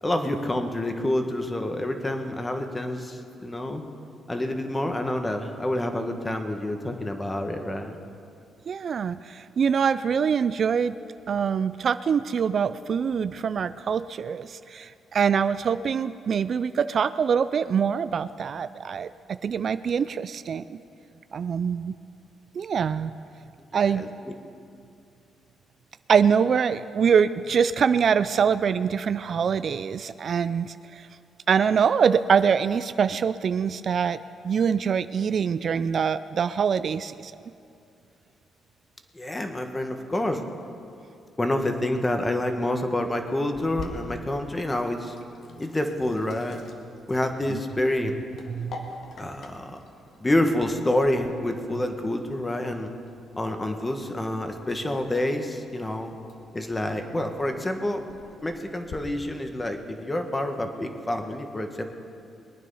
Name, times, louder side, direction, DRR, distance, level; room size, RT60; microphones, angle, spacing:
voice 1, 0.0-3.8 4.3-8.0 23.9-24.1 39.1-40.4 41.4-45.1 45.6-46.6 47.1-48.1 49.2-49.8 50.2-52.9 53.4-56.1 56.5-58.0 58.4-61.9, left 1 dB, 20° left, 5 dB, 1.5 m, -28 dB
voice 2, 8.7-11.0 11.3-20.8 21.3-22.0 22.5-23.1 23.7-24.1 26.1-31.1 31.5-34.2 34.4-37.3 47.5-47.6 48.5-48.9, right 7 dB, 50° right, 13 dB, 0.3 m, -24 dB
Sink (filling or washing), 43.5-59.0, left 3 dB, 60° left, 1.7 m, -47 dB
22.0 x 9.4 x 5.5 m, 2.5 s
cardioid pair, 90°, 0 cm